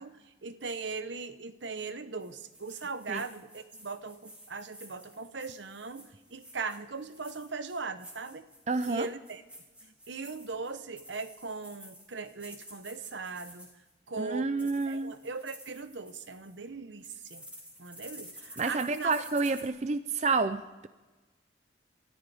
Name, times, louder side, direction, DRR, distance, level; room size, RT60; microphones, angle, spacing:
voice 1, 0.0-8.4 8.9-9.4 9.8-13.7 14.1-17.4 17.8-19.1, right 4 dB, 75° right, 11 dB, 1.0 m, -39 dB
sound 1, 2.2-13.9 14.3-16.6 17.0-19.7, equal, 5° right, 3.0 m, -51 dB
voice 2, 8.7-9.1 14.2-15.1 18.6-20.9, right 4 dB, 35° right, 11 dB, 0.5 m, -29 dB
29.5 x 13.5 x 3.5 m, 1.2 s
head